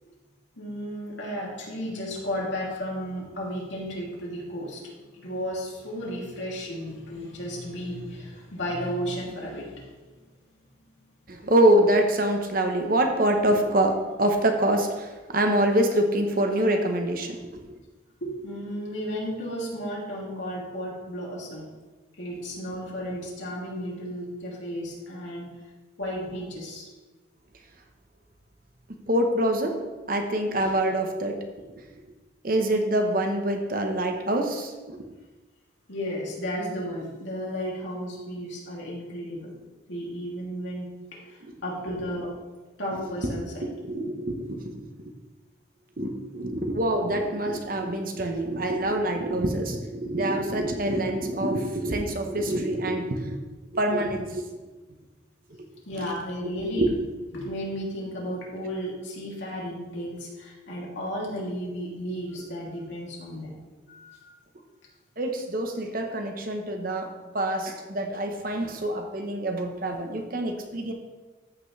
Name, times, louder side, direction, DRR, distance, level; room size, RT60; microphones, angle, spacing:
voice 1, 0.6-10.0 18.2-21.7 22.2-25.5 26.0-26.9 35.9-39.5 39.9-40.9 41.2-42.3 42.8-43.6 55.9-57.0 57.3-63.6 63.9-64.3, equal, 75° left, -4 dB, 2.7 m, -34 dB
voice 2, 11.3-17.8 29.1-29.8 30.1-31.4 32.4-35.1 41.4-41.5 43.2-43.3 43.6-44.8 46.0-53.4 53.7-54.4 56.0-56.1 56.7-56.9 65.2-70.9, right 1 dB, 45° right, 4 dB, 1.0 m, -25 dB
14.0 x 6.0 x 3.3 m, 1.2 s
head